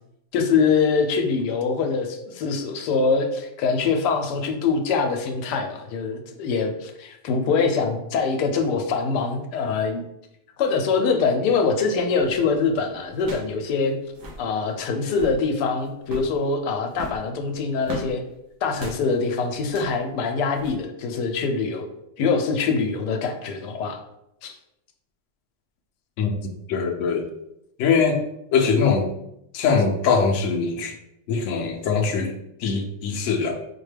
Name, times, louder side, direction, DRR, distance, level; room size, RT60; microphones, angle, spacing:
voice 1, 0.3-10.0 10.6-14.0 14.4-18.2 18.6-21.9 22.2-24.0 24.4-24.5, left 4 dB, 85° left, 4 dB, 1.2 m, -24 dB
sound 1, 12.2-12.5 13.2-13.6 13.8-13.9 14.1-14.5 15.0-15.4 16.0-16.4 16.9-18.1 18.7-19.0 19.6-20.0 20.5-20.7, right 1 dB, 85° right, 1.4 m, -37 dB
voice 2, 26.2-27.3 27.8-28.2 28.5-29.1 29.5-31.0 31.3-33.6, left 5 dB, 70° left, 2 dB, 0.8 m, -22 dB
4.5 x 2.2 x 3.2 m, 0.82 s
omnidirectional pair, 1.8 m